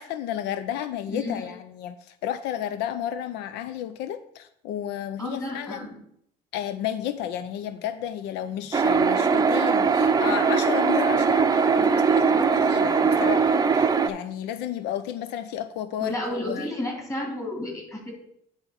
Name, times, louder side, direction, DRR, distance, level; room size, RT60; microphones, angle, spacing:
voice 1, 0.0-5.9 6.5-16.7, left 10 dB, 90° left, 12 dB, 0.4 m, -32 dB
voice 2, 1.1-1.5 5.2-5.9 16.0-18.1, left 1 dB, 20° left, -1 dB, 2.9 m, -32 dB
sound 1, 8.7-14.1, right 5 dB, 20° right, 0.6 m, -21 dB
9.6 x 3.5 x 5.6 m, 0.70 s
cardioid pair, 110°, 17 cm